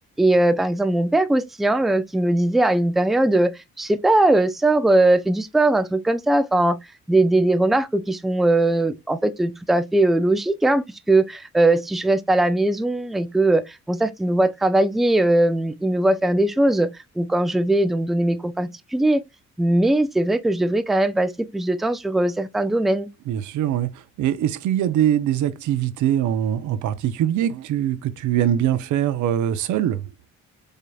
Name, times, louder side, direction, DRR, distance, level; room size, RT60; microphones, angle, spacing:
voice 1, 0.2-3.5 3.8-6.8 7.1-19.2 19.6-23.1, right 2 dB, ahead, 0.4 m, -20 dB
voice 2, 23.3-30.1, right 11 dB, 75° right, 0.6 m, -22 dB
5.0 x 2.8 x 2.2 m
cardioid pair, 90°, 30 cm